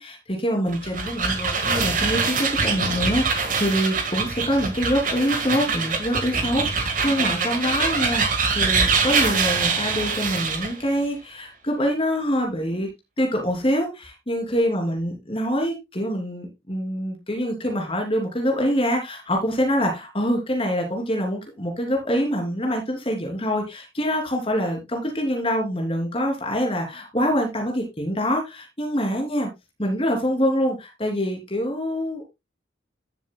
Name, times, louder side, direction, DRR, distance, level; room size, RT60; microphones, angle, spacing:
voice 1, 0.0-12.9 13.2-29.5 29.8-32.3, equal, 30° left, 2 dB, 3.1 m, -25 dB
sound 1, 0.7-10.8, right 4 dB, 45° right, 1.7 m, -24 dB
15.5 x 7.4 x 2.3 m, 0.22 s
head